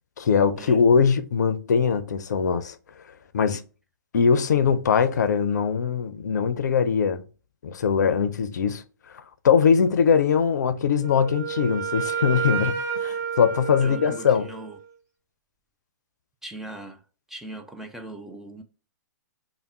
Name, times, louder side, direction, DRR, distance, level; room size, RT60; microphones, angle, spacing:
voice 1, 0.2-2.8 3.3-3.6 4.1-7.2 7.6-8.8 9.4-14.5, left 6 dB, 65° left, 0.5 m, -21 dB
Wind instrument woodwind instrument, 11.0-14.9, right 7 dB, 30° right, 1.1 m, -30 dB
voice 2, 13.8-14.8 16.4-17.0 17.3-18.6, right 1 dB, 5° right, 0.3 m, -39 dB
3.4 x 2.1 x 4.1 m
figure-of-eight pair, 120°, 10 cm